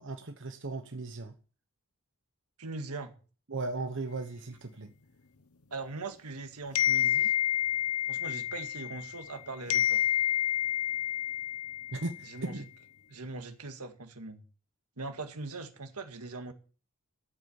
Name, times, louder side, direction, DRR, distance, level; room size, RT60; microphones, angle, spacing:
voice 1, 0.0-1.3 3.5-4.9 11.9-12.7, right 2 dB, 55° right, 1.1 m, -37 dB
voice 2, 2.6-3.2 5.7-7.3 8.1-10.0 12.2-12.7 13.1-14.4 15.0-16.5, right 3 dB, 85° right, 2.0 m, -41 dB
sound 1, 6.7-9.4 9.7-12.3, left 11 dB, 75° left, 1.1 m, -29 dB
13.0 x 8.3 x 7.2 m
head